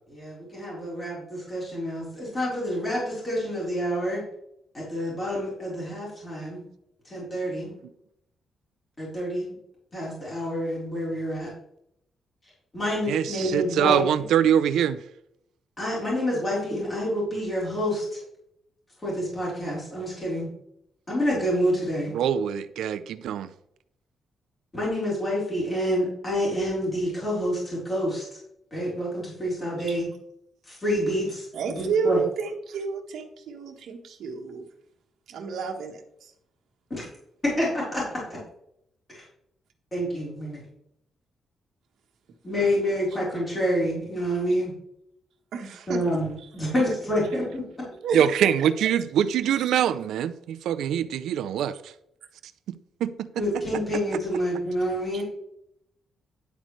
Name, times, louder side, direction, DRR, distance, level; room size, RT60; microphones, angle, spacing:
voice 1, 0.1-4.2 4.7-6.6 7.1-7.8 9.0-9.6 9.9-11.5 12.7-14.0 15.8-18.2 19.0-20.5 21.1-22.1 24.7-28.4 28.7-30.1 30.7-31.5 31.8-32.2 36.9-37.1 37.4-38.4 39.1-39.3 39.9-40.6 42.4-44.7 45.9-47.6 53.4-55.2, equal, 20° left, 4.1 m, -28 dB
voice 2, 13.1-15.0 22.1-23.5 48.1-51.9 53.0-53.4, right 9 dB, 90° right, 0.5 m, -24 dB
voice 3, 31.5-34.7 35.3-36.3 45.5-46.0 48.0-48.5 55.1-55.2, right 5 dB, 65° right, 1.4 m, -30 dB
10.5 x 8.2 x 3.2 m
cardioid pair, 180°, 0 cm